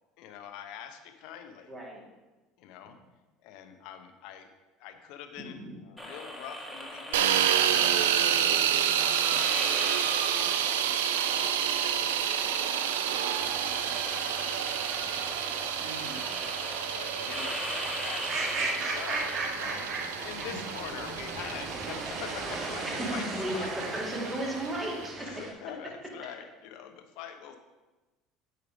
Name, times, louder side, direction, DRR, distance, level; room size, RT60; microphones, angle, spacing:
voice 1, 0.2-1.7 2.6-3.0 3.4-4.5 4.8-7.5 7.8-8.1 8.4-10.9 11.2-13.4 13.9-16.0 16.5-19.9 20.2-23.2 23.5-23.7 23.9-24.0 25.1-27.6, left 9 dB, 65° left, 7 dB, 0.9 m, -45 dB
voice 2, 1.7-2.0 5.4-5.8 15.8-16.2 20.4-20.6 22.8-25.2, right 1 dB, 20° right, -3 dB, 2.7 m, -35 dB
sound 1, 6.0-19.4, equal, ahead, 1.8 m, -39 dB
sound 2, 7.1-25.1, right 10 dB, 85° right, 0.4 m, -29 dB
sound 3, 13.4-25.5, right 3 dB, 50° right, 1.7 m, -37 dB
8.8 x 4.5 x 4.9 m, 1.2 s
hypercardioid pair, 75°, 0 cm